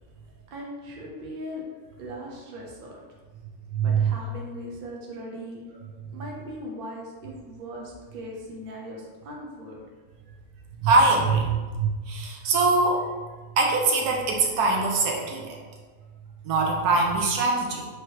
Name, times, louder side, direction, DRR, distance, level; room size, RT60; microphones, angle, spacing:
voice 1, 0.5-1.6 2.0-3.0 3.8-5.6 6.1-9.8, equal, 45° right, -2 dB, 0.8 m, -39 dB
voice 2, 3.7-4.1 6.1-6.2 10.8-13.1 13.6-15.6 16.4-17.9, right 3 dB, 80° right, 0 dB, 1.2 m, -23 dB
5.0 x 3.0 x 3.1 m, 1.3 s
omnidirectional pair, 1.7 m